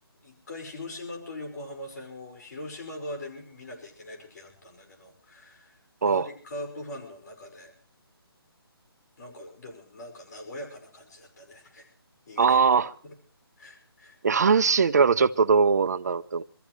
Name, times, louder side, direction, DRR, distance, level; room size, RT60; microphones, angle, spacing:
voice 1, 0.2-7.7 9.2-11.9 12.3-12.6 13.0-13.1 13.6-14.2, left 1 dB, 45° left, 5.5 m, -41 dB
voice 2, 12.4-12.9 14.2-16.4, right 5 dB, 40° right, 0.8 m, -21 dB
26.0 x 14.0 x 3.1 m
hypercardioid pair, 170°, 13 cm